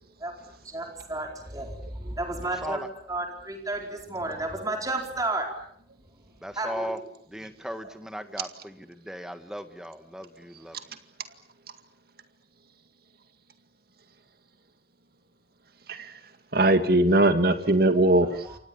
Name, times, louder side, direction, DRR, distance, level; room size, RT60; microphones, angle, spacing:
voice 1, 0.6-5.5 6.5-7.0 18.4-18.6, right 2 dB, 20° right, 2 dB, 4.6 m, -32 dB
voice 2, 6.4-7.0 7.3-8.8 9.1-10.8, equal, 5° right, 9 dB, 1.7 m, -36 dB
voice 3, 16.5-18.5, right 1 dB, 55° right, 8 dB, 2.1 m, -20 dB
29.0 x 24.5 x 7.2 m, 0.66 s
head